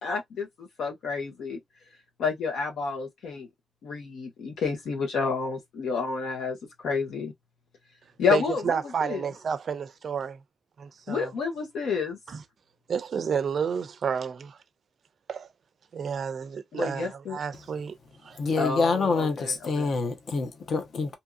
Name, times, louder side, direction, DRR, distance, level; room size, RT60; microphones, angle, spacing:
voice 1, 0.0-1.6 2.2-3.5 3.8-6.6 6.8-7.3 8.2-9.3 11.1-12.2 16.7-17.4 18.6-19.9, left 5 dB, 80° left, 1.2 m, -30 dB
voice 2, 8.3-10.4 10.8-11.3 12.3-12.4 12.9-14.6 15.3-15.5 15.9-17.9 18.2-18.4, right 7 dB, 45° right, 0.4 m, -30 dB
voice 3, 18.4-21.2, left 4 dB, 45° left, 0.7 m, -26 dB
2.8 x 2.7 x 2.4 m
wide cardioid pair, 180°, 0 cm